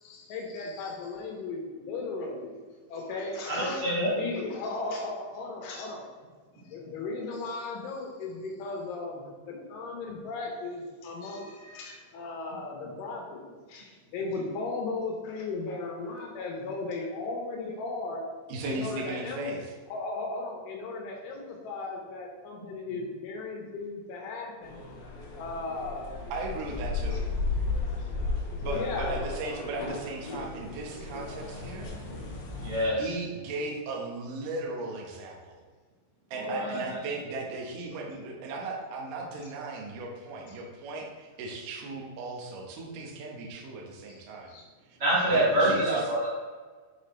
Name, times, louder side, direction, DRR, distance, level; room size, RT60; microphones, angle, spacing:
voice 1, 0.0-2.6 2.9-6.0 6.6-18.2 18.6-19.4 19.9-24.8 25.3-26.2 28.0-28.1 28.6-29.1 44.1-44.2 44.5-44.6, left 3 dB, 75° left, -1 dB, 3.4 m, -36 dB
voice 2, 3.5-4.2 32.6-33.1 36.4-37.0 45.0-46.3, right 1 dB, 65° right, -8 dB, 1.0 m, -26 dB
voice 3, 18.5-19.7 26.3-27.3 28.6-31.9 33.0-35.6 36.3-44.5 45.3-46.0, right 2 dB, 85° right, -1 dB, 1.9 m, -36 dB
sound 1, 24.6-32.8, left 3 dB, 60° left, 2.6 m, -34 dB
8.1 x 5.1 x 3.2 m, 1.5 s
omnidirectional pair, 5.7 m